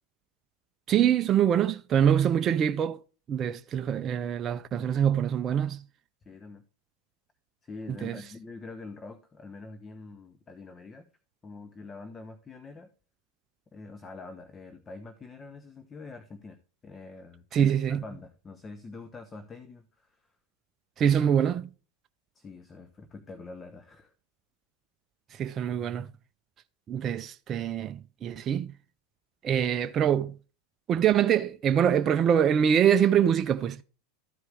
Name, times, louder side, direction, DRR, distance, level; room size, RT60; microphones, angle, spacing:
voice 1, 0.9-3.0 3.3-5.8 7.9-8.2 17.5-18.0 21.0-21.7 25.3-26.1 26.9-28.7 29.4-30.3 30.9-33.8, right 9 dB, 35° right, 0.5 m, -24 dB
voice 2, 6.2-6.6 7.6-11.1 11.4-12.9 13.7-20.2 22.3-24.1, left 3 dB, 20° left, 0.9 m, -45 dB
13.5 x 4.7 x 3.3 m
hypercardioid pair, 105°, 0 cm